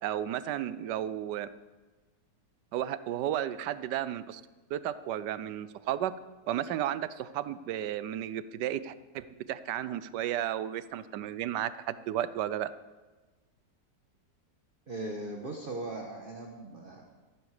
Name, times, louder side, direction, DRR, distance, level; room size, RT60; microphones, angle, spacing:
voice 1, 0.0-1.5 2.7-4.4 4.7-6.1 6.5-12.7, right 11 dB, 85° right, 15 dB, 1.2 m, -33 dB
voice 2, 14.9-17.0, right 2 dB, 35° right, 1 dB, 1.2 m, -39 dB
13.5 x 12.0 x 4.9 m, 1.2 s
omnidirectional pair, 1.8 m